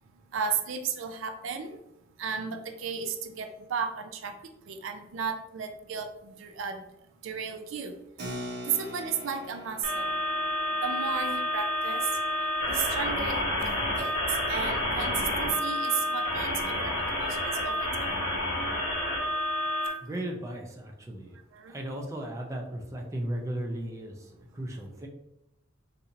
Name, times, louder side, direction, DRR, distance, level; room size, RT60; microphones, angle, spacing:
voice 1, 0.3-1.8 2.2-4.4 4.7-6.8 7.2-7.9 8.7-10.1 10.8-12.1 12.7-13.4 13.8-17.9 21.5-21.7, right 6 dB, 75° right, 7 dB, 0.4 m, -34 dB
Keyboard (musical), 8.2-14.2, equal, 55° right, 0.8 m, -44 dB
sound 1, 9.8-19.9, left 1 dB, 60° left, 1.1 m, -29 dB
voice 2, 20.0-21.4 21.7-25.1, right 1 dB, 15° right, 0 dB, 0.4 m, -36 dB
4.2 x 2.6 x 2.6 m, 0.83 s
head